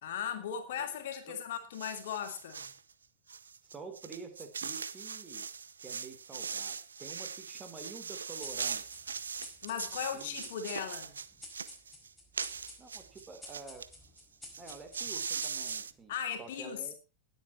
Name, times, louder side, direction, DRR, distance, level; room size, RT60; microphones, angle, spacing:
voice 1, 0.0-2.7 9.6-11.2 16.1-16.9, left 8 dB, 55° left, 3.0 m, -37 dB
sound 1, 1.7-2.8 3.3-13.9 14.2-14.3 14.5-15.9, right 6 dB, 70° right, 0.7 m, -40 dB
voice 2, 3.6-5.5 5.8-8.8 10.1-10.5 12.8-13.8 14.6-16.1 16.4-16.9, right 4 dB, 20° right, 3.6 m, -48 dB
sound 2, 8.4-16.2, left 2 dB, 5° left, 4.9 m, -53 dB
19.5 x 8.3 x 4.5 m
figure-of-eight pair, 90°, 0 cm